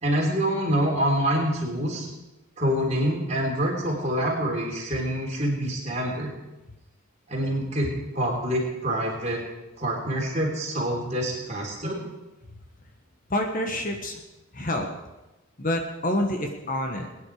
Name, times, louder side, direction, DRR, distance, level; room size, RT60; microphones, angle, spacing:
voice 1, 0.0-2.1 2.6-6.3 7.3-9.4 9.8-12.0, equal, 30° right, -2 dB, 3.9 m, -26 dB
voice 2, 13.3-14.2 14.5-14.9 15.6-17.1, left 1 dB, 40° left, 4 dB, 1.4 m, -27 dB
20.5 x 10.0 x 5.0 m, 1.0 s
head